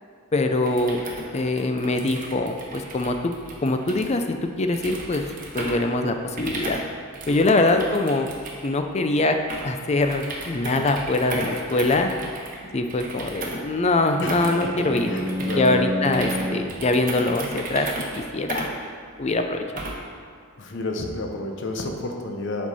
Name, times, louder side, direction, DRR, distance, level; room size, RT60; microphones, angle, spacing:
voice 1, 0.3-1.0 1.3-3.3 3.6-5.2 5.5-6.8 7.3-8.3 8.6-12.1 12.7-15.1 15.5-17.9 18.1-18.7 19.2-19.6, left 2 dB, 30° left, 6 dB, 0.5 m, -23 dB
sound 1, 0.6-20.2, right 2 dB, 40° right, 1.0 m, -36 dB
voice 2, 7.4-7.8 14.2-15.8 20.6-22.7, left 2 dB, 60° left, 3 dB, 0.8 m, -31 dB
Bowed string instrument, 13.7-16.9, equal, 20° right, 0.7 m, -30 dB
7.7 x 5.5 x 4.1 m, 2.1 s
head